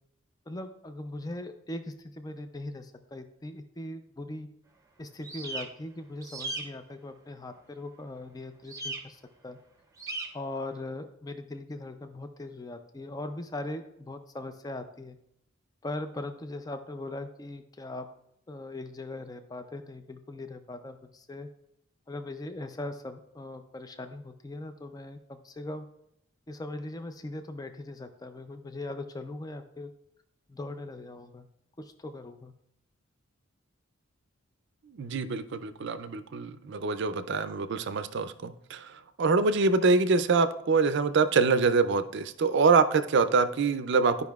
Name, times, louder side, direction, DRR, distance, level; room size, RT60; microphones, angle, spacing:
voice 1, 0.5-4.5 5.0-9.6 10.3-15.2 15.8-18.1 18.5-21.5 22.1-25.9 26.5-29.9 30.5-31.5 31.8-32.5, left 2 dB, 20° left, 8 dB, 0.4 m, -40 dB
sound 1, 5.2-5.6 6.2-6.6 8.7-9.0 10.0-10.3, right 2 dB, 15° right, 0.7 m, -36 dB
voice 2, 34.9-38.9 39.2-44.2, right 4 dB, 60° right, 11 dB, 0.5 m, -25 dB
12.5 x 5.3 x 2.3 m, 0.77 s
head